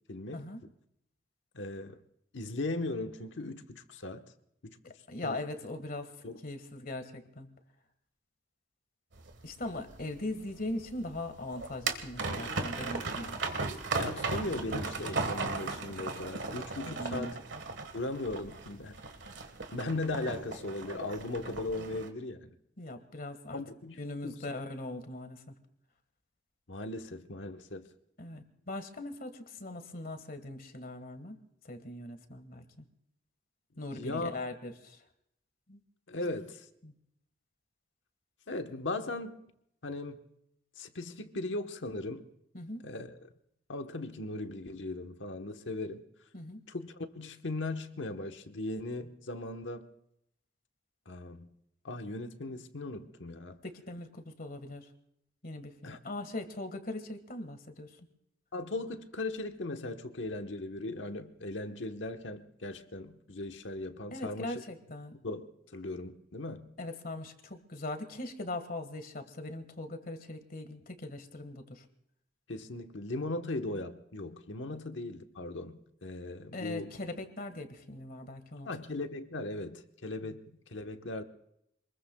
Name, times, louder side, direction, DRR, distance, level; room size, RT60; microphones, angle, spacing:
voice 1, 0.1-0.4 1.5-2.0 2.3-4.2 4.6-4.8 5.2-5.4 6.2-6.4 14.0-17.4 17.9-19.0 19.7-22.5 23.5-24.0 24.2-24.4 26.7-27.9 33.9-34.4 36.1-36.6 38.5-39.4 39.8-40.2 40.8-42.3 42.8-43.3 43.7-46.0 46.7-49.9 51.1-51.5 51.8-53.6 55.8-56.0 58.5-64.6 65.2-65.4 65.7-66.7 72.5-77.0 78.6-81.2, left 2 dB, 90° left, 1.2 m, -38 dB
voice 2, 4.8-6.1 6.4-7.5 9.4-13.4 16.9-17.3 22.8-23.6 24.0-25.5 28.2-31.4 31.6-32.9 33.8-35.0 35.7-35.8 36.8-36.9 42.5-42.8 46.3-46.6 53.6-54.9 55.4-57.9 64.1-65.1 66.8-71.9 76.5-78.7 80.2-80.4, left 2 dB, 50° left, 1.7 m, -40 dB
sound 1, 9.2-22.1, right 3 dB, 75° right, 1.5 m, -37 dB
27.0 x 21.0 x 2.3 m
head